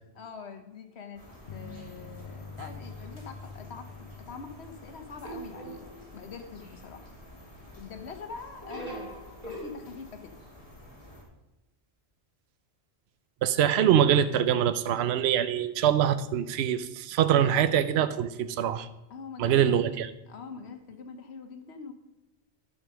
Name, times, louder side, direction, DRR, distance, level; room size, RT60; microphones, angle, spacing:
voice 1, 0.1-1.2 1.5-7.1 7.7-10.4 19.1-19.8 20.3-21.9, left 5 dB, 70° left, 7 dB, 1.2 m, -44 dB
sound 1, 1.2-11.2, left 1 dB, 35° left, 2.6 m, -50 dB
sound 2, 1.5-5.7, left 5 dB, 55° left, 0.7 m, -46 dB
sound 3, 5.2-6.3 8.6-9.7, right 1 dB, 35° right, 3.0 m, -41 dB
voice 2, 13.4-18.9 19.4-20.1, right 9 dB, 75° right, 12 dB, 0.8 m, -24 dB
11.0 x 5.3 x 6.2 m, 0.94 s
omnidirectional pair, 1.1 m